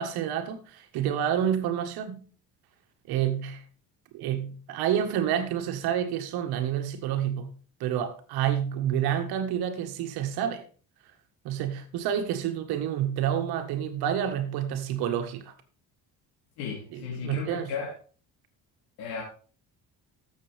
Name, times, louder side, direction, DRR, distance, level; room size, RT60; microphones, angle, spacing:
voice 1, 0.0-2.2 3.1-3.6 4.1-7.5 7.8-10.6 11.4-15.5 16.9-17.7, right 9 dB, 85° right, 1.7 m, -29 dB
voice 2, 16.6-17.9 19.0-19.2, left 6 dB, 90° left, 3.1 m, -34 dB
14.0 x 7.1 x 3.5 m
cardioid pair, 120°, 37 cm